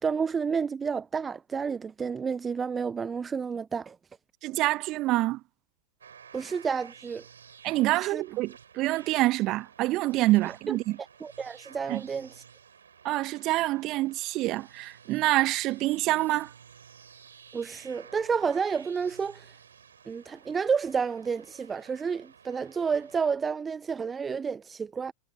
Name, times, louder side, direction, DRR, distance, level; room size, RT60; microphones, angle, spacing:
voice 1, 0.0-4.0 6.3-7.2 8.0-8.2 10.5-10.8 11.2-12.3 17.5-19.5 20.1-25.1, right 6 dB, 15° right, 0.9 m, -30 dB
voice 2, 4.4-5.4 7.6-11.0 11.9-12.0 13.0-16.5, right 18 dB, 40° right, 1.3 m, -26 dB
sound 1, 6.0-23.3, right 7 dB, 70° right, 7.9 m, -53 dB
figure-of-eight pair, 90°, 0 cm